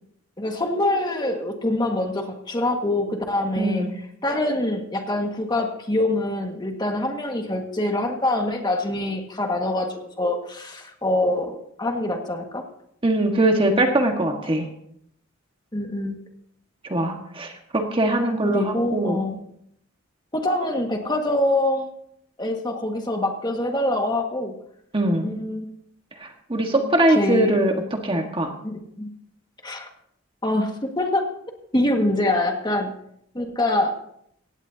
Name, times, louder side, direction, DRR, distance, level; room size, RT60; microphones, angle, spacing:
voice 1, 0.4-3.9 4.2-12.6 15.7-16.2 18.4-19.4 20.3-21.9 22.4-24.5 25.2-25.7 27.1-27.6 28.6-29.1 29.6-29.9 30.4-31.3 31.7-32.9 33.3-33.9, left 1 dB, 20° left, 3 dB, 1.8 m, -25 dB
voice 2, 3.5-3.9 13.0-14.6 16.8-19.2 24.9-25.3 26.2-27.7 28.0-28.5, right 1 dB, 25° right, 3 dB, 1.6 m, -22 dB
17.0 x 16.5 x 2.8 m, 0.70 s
head